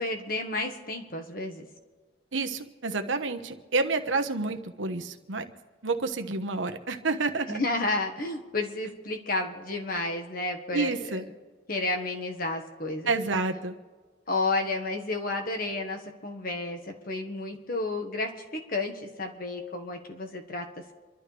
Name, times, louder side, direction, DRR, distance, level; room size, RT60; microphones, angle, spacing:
voice 1, 0.0-1.7 7.5-11.2 11.7-13.1 14.3-20.7, left 2 dB, 45° left, 4 dB, 1.4 m, -31 dB
voice 2, 2.3-5.5 5.8-7.6 10.7-11.2 13.1-13.7, right 3 dB, 75° right, 6 dB, 1.2 m, -29 dB
28.5 x 12.0 x 3.4 m, 1.4 s
head